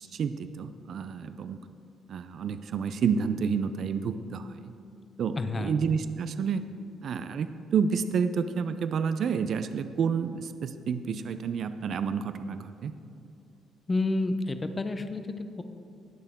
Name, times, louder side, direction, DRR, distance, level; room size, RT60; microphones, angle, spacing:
voice 1, 0.0-1.6 2.1-4.7 5.2-6.6 7.0-12.9, right 6 dB, 55° right, 11 dB, 0.5 m, -29 dB
voice 2, 5.4-5.7 13.9-15.6, left 2 dB, 20° left, 9 dB, 0.7 m, -30 dB
19.0 x 6.8 x 3.7 m, 2.7 s
cardioid pair, 125°, 0 cm